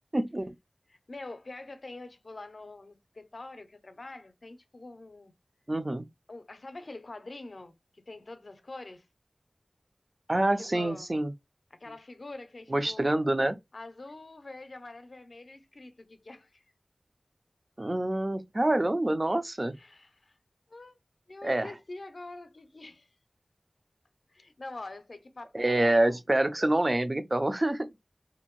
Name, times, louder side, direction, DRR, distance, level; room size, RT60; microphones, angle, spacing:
voice 1, 0.1-0.5 5.7-6.0 10.3-11.3 12.7-13.6 17.8-19.8 21.4-21.7 25.5-27.9, right 1 dB, 40° right, 0.4 m, -26 dB
voice 2, 0.9-5.3 6.3-9.1 10.6-11.1 11.7-13.2 13.7-16.6 19.7-20.4 20.7-21.0 21.3-23.1 24.3-26.2, left 2 dB, 75° left, 0.5 m, -45 dB
2.6 x 2.5 x 3.0 m
wide cardioid pair, 40°, 0 cm